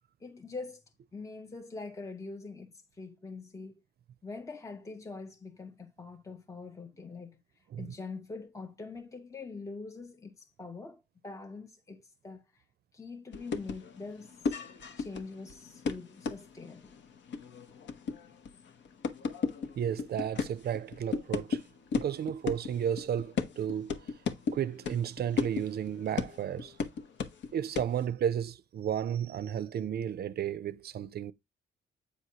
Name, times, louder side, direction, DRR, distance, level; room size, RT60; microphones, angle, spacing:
voice 1, 0.2-0.8 1.1-3.8 4.2-12.6 12.9-14.6 15.0-17.0, left 3 dB, 15° left, 0.7 m, -44 dB
sound 1, 13.3-21.6 21.9-27.5 27.8-28.0, left 5 dB, 65° left, 1.0 m, -35 dB
voice 2, 19.8-21.6 22.0-24.0 24.5-26.7 27.5-31.3, right 9 dB, 55° right, 0.5 m, -33 dB
8.3 x 4.8 x 2.8 m
cardioid pair, 90°, 20 cm